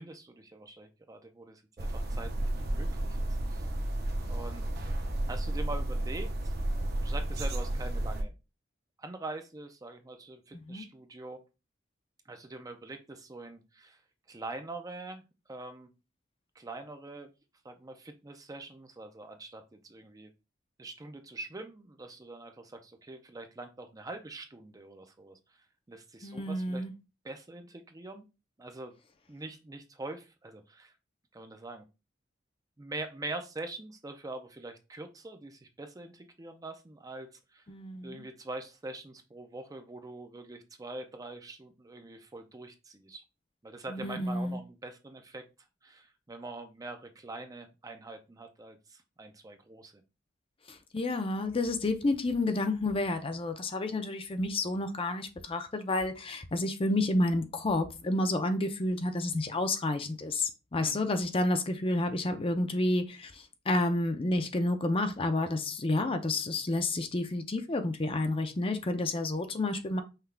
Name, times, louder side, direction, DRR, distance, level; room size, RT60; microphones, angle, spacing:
voice 1, 0.0-3.7 4.3-6.5 7.0-8.3 9.0-11.4 12.3-14.0 14.3-15.2 15.5-15.9 16.6-17.3 17.6-20.3 20.8-25.4 25.9-26.9 27.2-28.2 28.6-28.9 29.3-30.9 31.3-31.8 32.8-37.6 38.0-43.2 43.6-45.4 45.8-50.0 60.8-61.0, right 2 dB, 20° right, 0.5 m, -44 dB
sound 1, 1.8-8.2, right 1 dB, 55° right, 0.8 m, -32 dB
voice 2, 10.5-10.8 26.2-26.9 37.7-38.2 43.9-44.6 50.7-70.0, left 2 dB, 30° left, 0.6 m, -30 dB
5.7 x 2.3 x 3.3 m
head